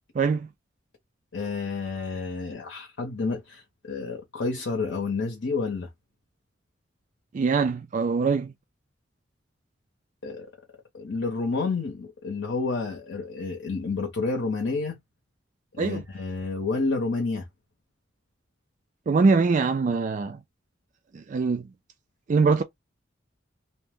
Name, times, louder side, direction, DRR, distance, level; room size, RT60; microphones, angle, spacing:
voice 1, 0.1-0.5 7.3-8.5 15.8-16.0 19.1-20.4 21.1-21.7 22.3-22.6, right 4 dB, 40° right, 0.3 m, -23 dB
voice 2, 1.3-5.9 10.2-10.5 10.9-15.0 15.7-17.4, left 3 dB, 75° left, 0.8 m, -29 dB
2.7 x 2.1 x 3.4 m
head